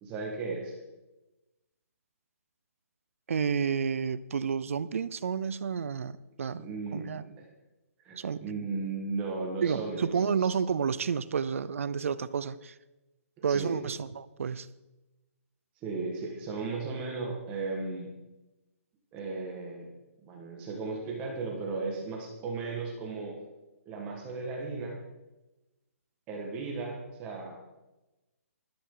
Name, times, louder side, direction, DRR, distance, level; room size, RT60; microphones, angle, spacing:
voice 1, 0.0-0.7 6.6-7.4 8.0-10.5 13.4-13.8 15.8-18.1 19.1-19.9 20.2-23.4 23.8-25.0 26.3-27.6, right 3 dB, 15° right, 0 dB, 1.6 m, -36 dB
voice 2, 3.3-6.6 6.9-7.2 8.2-8.4 9.6-12.7 13.4-14.7, right 6 dB, 60° right, 17 dB, 0.6 m, -30 dB
12.5 x 12.5 x 3.9 m, 1.0 s
hypercardioid pair, 170°, 8 cm